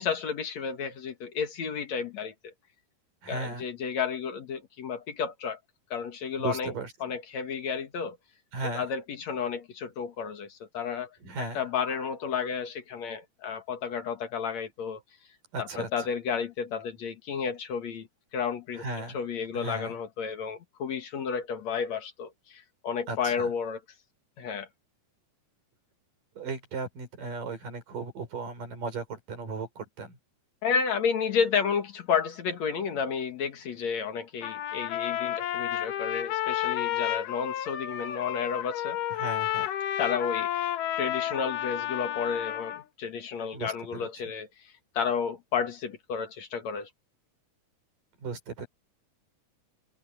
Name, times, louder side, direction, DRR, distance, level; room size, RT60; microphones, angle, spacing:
voice 1, 0.0-2.5 3.3-5.6 5.9-6.7 7.0-8.2 8.7-11.1 11.5-15.0 15.6-18.1 18.3-18.8 19.1-23.8 24.4-24.7 30.6-39.0 40.0-40.6 41.0-44.5 44.9-46.9, left 6 dB, 60° left, 2.8 m, -31 dB
voice 2, 3.2-3.6 6.4-6.9 8.5-8.8 11.2-11.6 15.5-16.1 18.7-19.2 19.5-20.0 23.1-23.5 26.4-30.2 39.1-39.7 43.5-44.1 48.2-48.7, right 3 dB, 85° right, 7.1 m, -36 dB
Trumpet, 34.4-42.8, left 12 dB, 85° left, 2.8 m, -31 dB
omnidirectional pair, 3.7 m